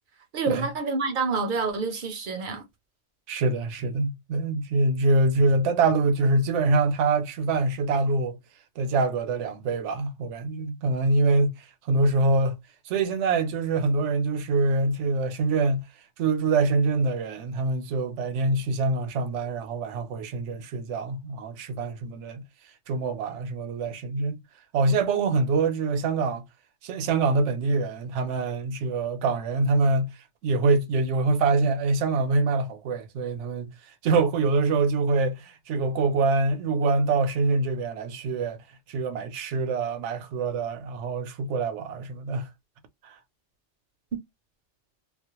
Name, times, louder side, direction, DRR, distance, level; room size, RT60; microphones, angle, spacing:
voice 1, 0.3-2.6, right 4 dB, 55° right, 0.6 m, -28 dB
voice 2, 3.3-8.4 8.8-12.6 12.9-15.8 16.2-22.4 22.9-24.4 24.7-26.5 26.8-30.2 30.4-33.7 34.0-42.5 43.0-43.2, right 3 dB, 80° right, 0.9 m, -25 dB
2.3 x 2.0 x 2.9 m
omnidirectional pair, 1.2 m